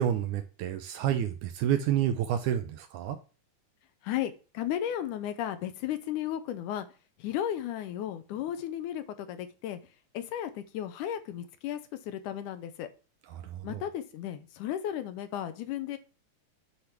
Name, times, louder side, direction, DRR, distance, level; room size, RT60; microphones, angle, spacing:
voice 1, 0.0-3.2 13.3-13.8, right 10 dB, 80° right, 2.1 m, -29 dB
voice 2, 4.0-6.9 7.2-9.8 10.1-12.9 13.6-16.0, left 11 dB, 80° left, 2.3 m, -34 dB
9.8 x 3.4 x 5.9 m
omnidirectional pair, 3.5 m